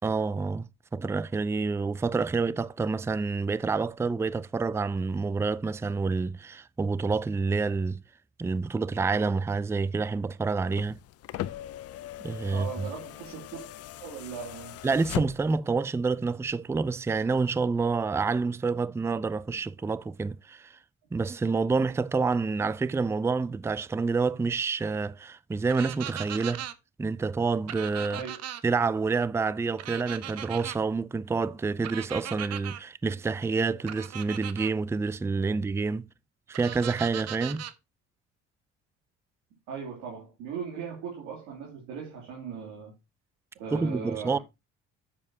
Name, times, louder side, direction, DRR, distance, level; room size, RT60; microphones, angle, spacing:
voice 1, 0.0-8.0 8.4-11.0 12.2-12.9 14.8-20.7 21.1-26.7 27.0-28.2 28.6-36.1 36.5-37.6 43.7-44.4, right 4 dB, 10° right, 0.4 m, -28 dB
sound 1, 10.6-15.7 16.9-17.0, left 13 dB, 55° left, 0.5 m, -39 dB
voice 2, 12.5-13.6 14.0-14.8 28.1-28.3 37.4-37.6 39.7-42.9 43.5-44.4, right 6 dB, 85° right, 2.8 m, -38 dB
sound 2, 25.7-26.7 27.7-28.6 29.8-30.8 31.8-32.8 33.9-34.7 36.5-37.7, right 11 dB, 60° right, 0.8 m, -38 dB
9.2 x 7.6 x 2.8 m
supercardioid pair, 85°, 29 cm